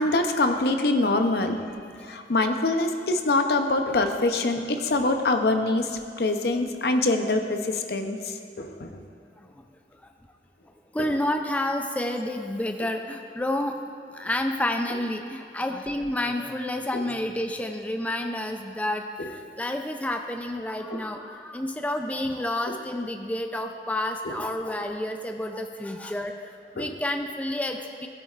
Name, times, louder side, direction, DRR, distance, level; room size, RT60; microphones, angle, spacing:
voice 1, 0.0-1.6 2.0-9.0 11.0-11.1 16.9-17.0 19.2-19.3 20.9-21.0 22.7-22.8 24.3-24.4 26.8-26.9, left 2 dB, 60° left, 6 dB, 0.6 m, -25 dB
voice 2, 9.2-9.6 10.9-28.1, left 1 dB, 10° left, 4 dB, 0.4 m, -30 dB
15.5 x 8.6 x 2.4 m, 2.5 s
head